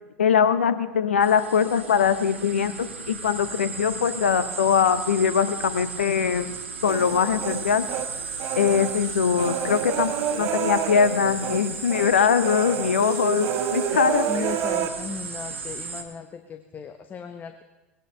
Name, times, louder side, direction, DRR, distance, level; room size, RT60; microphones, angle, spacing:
voice 1, 0.2-6.5 6.8-7.9 8.6-14.6, left 7 dB, 75° left, 13 dB, 0.7 m, -22 dB
sound 1, 1.2-16.0, right 5 dB, 80° right, 1.3 m, -35 dB
Human voice, 6.9-8.1 8.4-11.6 11.9-12.1 12.4-14.9, right 10 dB, 50° right, 1.1 m, -29 dB
voice 2, 14.3-17.6, left 6 dB, 25° left, 7 dB, 0.9 m, -36 dB
19.5 x 17.5 x 3.2 m, 1.1 s
figure-of-eight pair, 80°, 7 cm